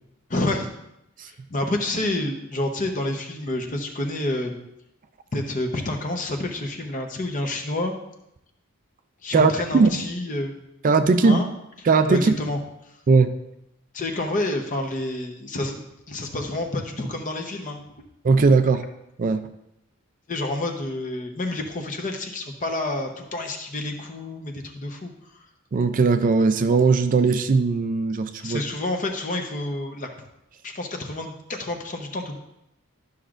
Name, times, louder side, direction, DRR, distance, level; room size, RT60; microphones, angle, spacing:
voice 1, 0.3-0.7 1.3-4.6 5.3-7.9 9.2-10.6 11.2-11.5 12.1-12.6 13.9-17.8 20.3-25.1 28.4-30.1 30.6-32.4, left 2 dB, 35° left, 4 dB, 0.9 m, -29 dB
voice 2, 9.3-9.9 10.8-11.4 11.9-12.3 13.1-13.3 18.2-18.9 19.2-19.5 25.7-28.6, right 4 dB, 40° right, 9 dB, 0.4 m, -19 dB
12.0 x 6.0 x 2.5 m, 0.83 s
head